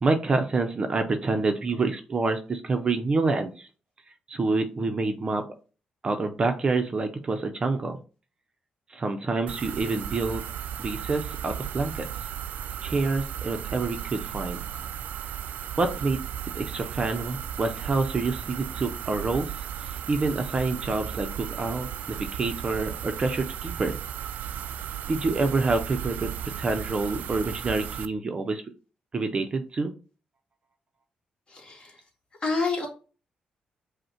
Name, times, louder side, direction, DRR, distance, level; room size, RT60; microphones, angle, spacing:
voice 1, 0.0-3.7 4.3-5.4 6.0-8.0 8.9-10.4 10.8-12.1 12.8-14.6 15.8-16.2 16.5-19.5 19.9-24.0 25.1-26.3 26.6-28.6 29.1-29.9, right 3 dB, 35° right, 6 dB, 0.5 m, -27 dB
sound 1, 9.5-28.1, right 10 dB, 80° right, 0.3 m, -35 dB
voice 2, 31.5-32.0 32.4-32.9, left 3 dB, 35° left, 1 dB, 1.4 m, -28 dB
5.2 x 2.1 x 4.3 m, 0.36 s
cardioid pair, 105°, 3 cm